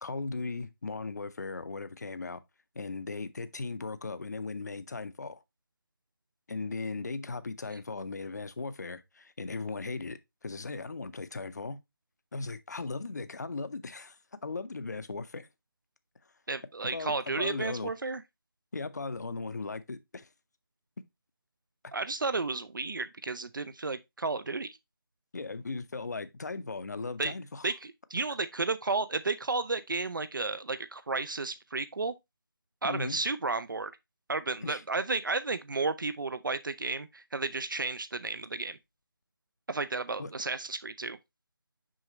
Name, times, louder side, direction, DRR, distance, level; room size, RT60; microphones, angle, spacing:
voice 1, 0.0-2.4 2.7-5.4 6.5-11.8 12.3-14.2 14.4-15.5 16.9-17.9 18.7-20.3 21.8-21.9 25.3-27.6 32.8-33.2 34.6-34.8 40.2-40.3, left 3 dB, 45° left, 0.6 m, -37 dB
voice 2, 16.5-18.2 21.9-24.8 27.2-27.3 27.6-32.1 32.8-33.9 34.3-38.8 39.7-41.2, right 3 dB, 60° right, 0.5 m, -32 dB
6.4 x 4.9 x 3.0 m
figure-of-eight pair, 170°, 12 cm